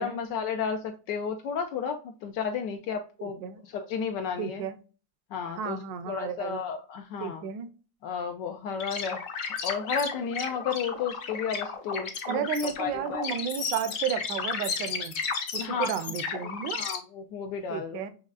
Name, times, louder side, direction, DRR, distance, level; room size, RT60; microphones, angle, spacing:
voice 1, 0.0-4.6 5.3-5.8 6.1-7.4 8.0-9.2 9.6-12.4 12.8-13.2 15.6-15.9 16.8-18.0, left 6 dB, 75° left, 4 dB, 1.2 m, -32 dB
voice 2, 3.2-3.6 4.4-4.8 5.6-6.6 7.2-7.7 12.3-15.1 15.5-16.8 17.7-18.1, right 7 dB, 80° right, 11 dB, 1.3 m, -33 dB
sound 1, 8.8-17.0, left 6 dB, 55° left, 1.1 m, -33 dB
6.4 x 3.1 x 2.4 m, 0.36 s
omnidirectional pair, 2.0 m